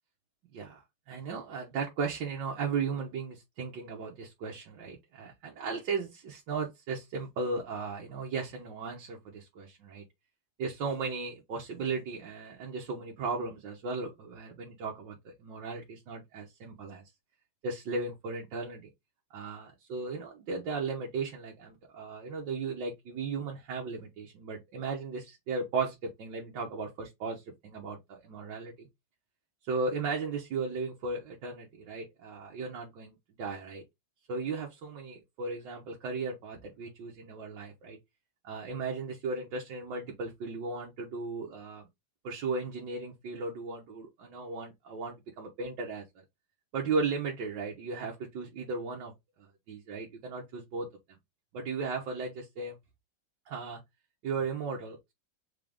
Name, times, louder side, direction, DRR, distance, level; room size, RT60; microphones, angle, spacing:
voice 1, 0.5-10.0 10.6-17.1 17.6-18.9 19.3-28.9 29.6-33.8 34.3-38.0 38.4-41.8 42.2-46.2 46.7-49.1 49.4-50.9 51.5-52.8 53.5-53.8 54.2-55.1, right 4 dB, 65° right, 1.6 m, -36 dB
3.9 x 3.8 x 3.5 m
omnidirectional pair, 2.3 m